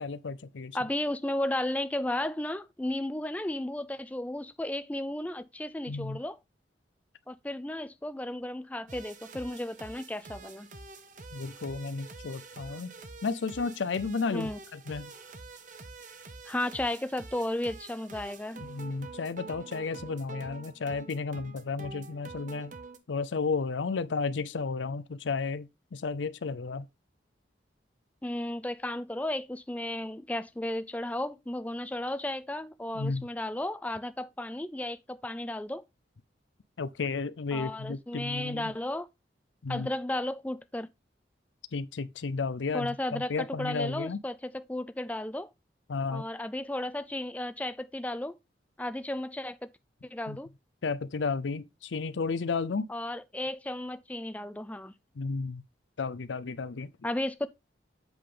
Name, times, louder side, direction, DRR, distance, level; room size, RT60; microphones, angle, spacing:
voice 1, 0.0-0.8 5.9-6.2 11.3-12.9 13.2-15.1 18.6-22.7 23.1-26.9 32.9-33.3 36.8-38.7 39.6-39.9 41.7-44.2 45.9-46.2 50.3-50.4 50.8-52.9 55.2-55.6 56.0-56.9, left 4 dB, 85° left, 0.5 m, -33 dB
voice 2, 0.7-6.4 7.3-10.7 14.3-14.6 16.5-18.7 28.2-35.8 37.5-39.1 39.7-40.9 42.7-45.5 46.1-48.4 48.8-49.7 50.1-50.5 52.9-54.9 57.0-57.5, left 1 dB, 10° left, 0.4 m, -34 dB
sound 1, 8.9-23.0, right 3 dB, 45° right, 0.9 m, -47 dB
8.0 x 3.7 x 5.0 m
head